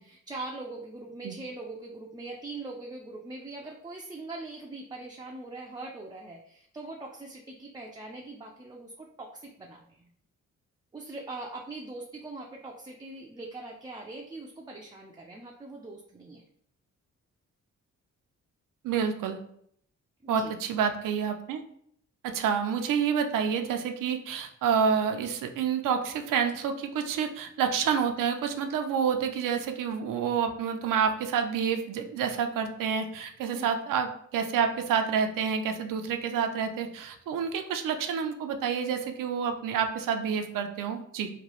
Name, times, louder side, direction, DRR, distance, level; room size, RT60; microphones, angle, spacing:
voice 1, 0.0-10.0 10.9-16.5 20.2-20.6 33.5-33.7, right 2 dB, 15° right, -1 dB, 0.4 m, -42 dB
voice 2, 18.8-19.4 20.3-21.6 22.2-41.3, right 7 dB, 75° right, 6 dB, 0.5 m, -28 dB
3.0 x 2.2 x 2.9 m, 0.68 s
cardioid pair, 70°, 32 cm